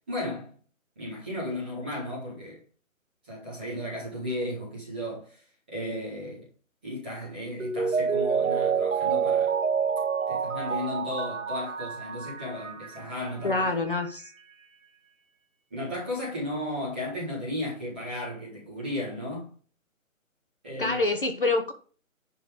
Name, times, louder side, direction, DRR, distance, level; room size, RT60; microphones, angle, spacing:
voice 1, 0.1-0.5 0.9-2.6 3.2-5.4 5.7-6.5 6.8-9.6 10.3-13.7 15.7-19.5 20.6-21.0, left 1 dB, 5° right, 1.7 m, -34 dB
Mallet percussion, 7.6-13.1 13.5-13.6, right 6 dB, 70° right, 1.2 m, -27 dB
voice 2, 13.4-14.3 20.8-21.7, left 3 dB, 40° left, 1.3 m, -26 dB
11.0 x 4.4 x 5.1 m
hypercardioid pair, 180°, 42 cm